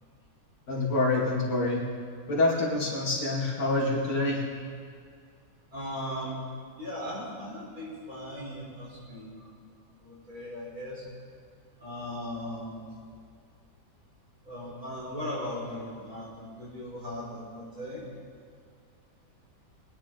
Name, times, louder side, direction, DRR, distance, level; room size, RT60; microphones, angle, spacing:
voice 1, 0.7-1.8 2.3-4.4, left 2 dB, 75° left, -4 dB, 3.0 m, -26 dB
voice 2, 5.7-6.4 6.8-9.5 9.8-11.1 11.8-12.8 14.4-18.0, left 1 dB, 55° right, -6 dB, 4.9 m, -38 dB
22.0 x 10.0 x 3.9 m, 2.1 s
omnidirectional pair, 1.8 m